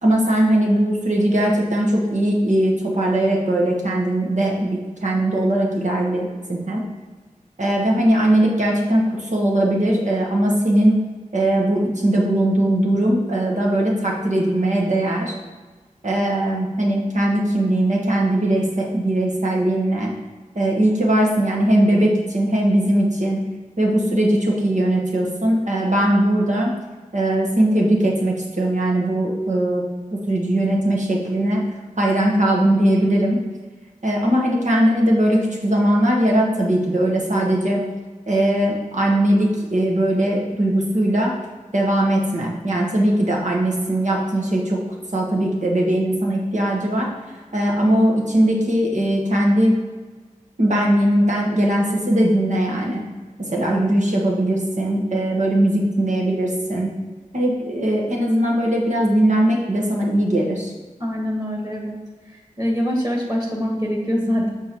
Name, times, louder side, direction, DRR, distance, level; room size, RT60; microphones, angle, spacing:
voice 1, 0.0-6.8 7.6-11.0 11.3-15.3 16.0-20.1 20.5-23.4 23.8-26.7 27.1-29.9 30.3-31.6 32.0-33.4 34.0-37.8 38.3-41.3 41.7-44.8 45.1-47.1 47.5-49.8 50.6-53.0 53.4-56.9 57.3-60.7, right 1 dB, 60° right, -2 dB, 1.6 m, -19 dB
voice 2, 61.0-62.0 62.6-64.5, equal, 30° right, -1 dB, 2.0 m, -23 dB
6.9 x 4.4 x 4.6 m, 1.4 s
wide cardioid pair, 50°, 14 cm